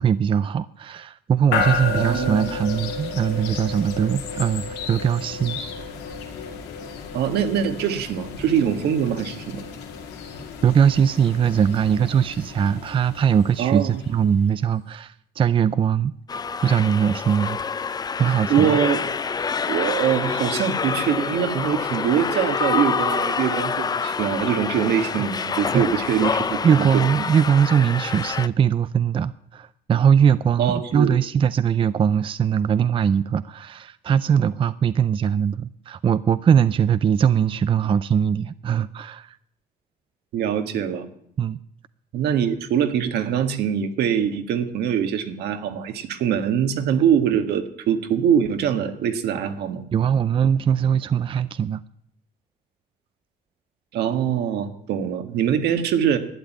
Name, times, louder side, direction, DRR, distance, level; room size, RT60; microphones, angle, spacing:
voice 1, 0.0-5.6 10.6-16.2 16.6-17.9 18.2-18.8 25.2-25.4 25.7-25.9 26.6-39.4 41.4-41.6 49.9-51.8, right 8 dB, 30° right, 15 dB, 0.4 m, -21 dB
sound 1, 1.5-14.5, left 5 dB, 90° left, 2.7 m, -32 dB
voice 2, 2.0-2.5 7.1-9.6 13.6-13.9 18.5-19.0 19.7-27.0 30.6-31.1 40.3-41.1 42.1-49.8 53.9-56.2, right 8 dB, 75° right, 7 dB, 1.7 m, -23 dB
sound 2, 16.3-28.5, left 5 dB, 25° left, 0.5 m, -27 dB
12.0 x 9.4 x 9.1 m, 0.70 s
cardioid pair, 110°, 17 cm